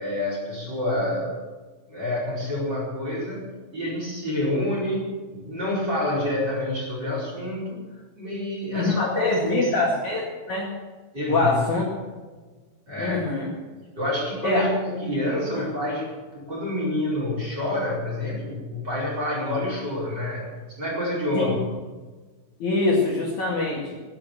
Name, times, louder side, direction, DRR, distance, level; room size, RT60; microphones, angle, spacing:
voice 1, 0.0-1.3 1.9-7.8 8.2-9.7 11.1-11.6 12.9-13.3 13.9-21.6, left 1 dB, 25° right, -4 dB, 4.9 m, -28 dB
voice 2, 8.7-10.2 10.5-10.7 11.3-11.8 13.0-13.5 14.4-14.7 15.5-15.7 21.3-21.6 22.6-23.8, left 3 dB, 50° left, -3 dB, 3.1 m, -24 dB
20.5 x 8.6 x 6.9 m, 1.3 s
omnidirectional pair, 5.0 m